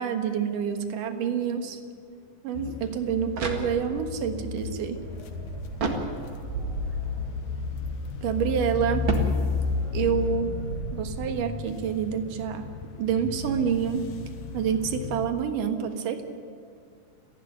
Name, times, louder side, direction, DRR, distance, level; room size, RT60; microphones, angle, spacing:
voice 1, 0.0-1.8 2.4-5.0 8.2-9.1 9.9-10.5 10.9-12.7 13.0-14.1 14.5-16.2, right 7 dB, 80° right, 7 dB, 3.1 m, -27 dB
sound 1, 2.5-15.3, left 6 dB, 75° left, 2.8 m, -34 dB
sound 2, 3.3-4.2 5.7-6.6 9.0-10.0, right 3 dB, 40° right, 2.4 m, -31 dB
sound 3, 5.0-11.3, right 4 dB, 60° right, 5.1 m, -38 dB
30.0 x 11.5 x 10.0 m, 2.3 s
omnidirectional pair, 3.7 m